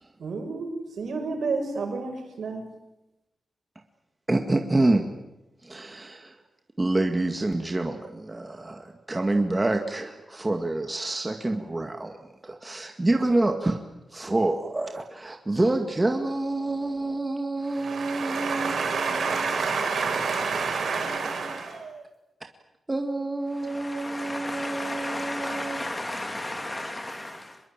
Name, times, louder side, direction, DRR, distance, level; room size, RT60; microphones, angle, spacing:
voice 1, 0.2-0.7 1.0-2.6 17.7-22.0, right 4 dB, 75° right, 4 dB, 6.5 m, -29 dB
voice 2, 4.3-5.0 5.6-6.4 6.8-12.2 12.4-13.8 14.1-19.6 21.0-21.6 22.9-25.9, right 2 dB, 20° right, 4 dB, 2.0 m, -27 dB
voice 3, 23.7-27.6, left 1 dB, 20° left, 6 dB, 2.8 m, -34 dB
25.5 x 22.0 x 9.0 m, 0.94 s
wide cardioid pair, 115°, 0 cm